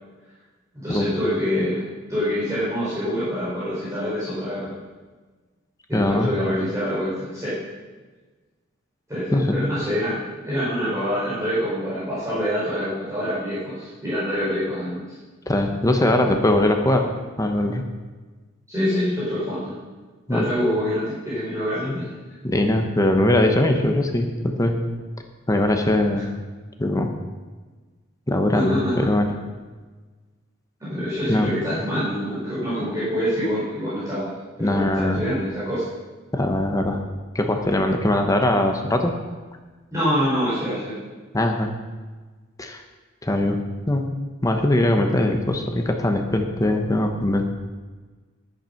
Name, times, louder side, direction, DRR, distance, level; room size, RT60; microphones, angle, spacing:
voice 1, 0.7-1.8 2.1-4.7 5.9-7.6 9.1-10.2 10.4-15.0 18.7-19.7 20.3-22.1 28.5-29.1 30.8-34.3 34.6-35.9 39.9-40.9, equal, 15° right, -11 dB, 4.7 m, -25 dB
voice 2, 5.9-6.3 9.3-9.5 15.5-17.1 17.4-17.8 20.3-20.5 22.4-24.8 25.5-26.2 26.8-27.1 28.3-29.3 31.3-31.5 34.6-35.2 36.3-37.0 37.3-39.1 41.3-41.7 42.6-42.8 43.2-43.6 43.9-44.1 44.4-47.4, left 1 dB, 15° left, 4 dB, 1.0 m, -21 dB
11.5 x 9.2 x 5.8 m, 1.3 s
head